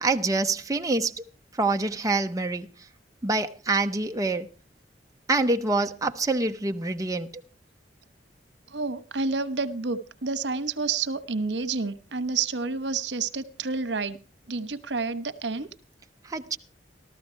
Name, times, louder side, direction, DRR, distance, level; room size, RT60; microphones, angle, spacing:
voice 1, 0.0-1.2 1.6-2.7 3.2-4.5 5.3-7.3 16.3-16.6, right 3 dB, 20° right, 0.8 m, -26 dB
voice 2, 8.7-14.2 14.5-15.7, right 4 dB, 80° right, 1.1 m, -29 dB
14.0 x 14.0 x 4.5 m
head